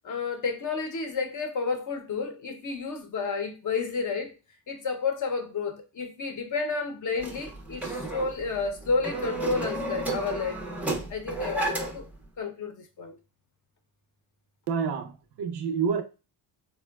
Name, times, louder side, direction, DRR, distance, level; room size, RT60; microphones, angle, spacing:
voice 1, 0.0-4.3 4.7-10.6 11.1-12.1 12.4-13.1, left 4 dB, 40° left, 0.6 m, -31 dB
sound 1, 7.2-12.1, right 2 dB, 5° right, 0.4 m, -32 dB
voice 2, 14.7-16.0, right 6 dB, 55° right, 0.5 m, -28 dB
3.7 x 2.1 x 2.2 m
cardioid pair, 100°, 49 cm